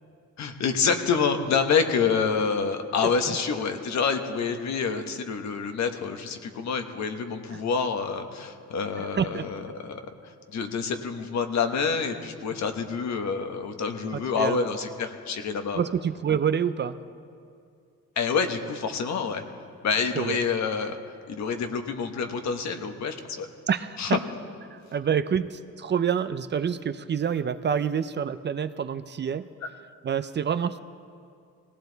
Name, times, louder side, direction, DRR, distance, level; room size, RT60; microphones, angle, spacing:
voice 1, 0.4-10.0 10.5-15.8 18.2-19.4 19.8-21.0 21.3-23.5 24.0-24.2, left 5 dB, 65° left, 6 dB, 1.3 m, -27 dB
voice 2, 9.0-9.4 14.1-14.7 15.8-17.0 20.2-20.4 23.7-24.2 24.7-29.5 30.0-30.8, right 7 dB, 35° right, 12 dB, 0.5 m, -27 dB
19.0 x 17.0 x 4.0 m, 2.3 s
cardioid pair, 90°, 30 cm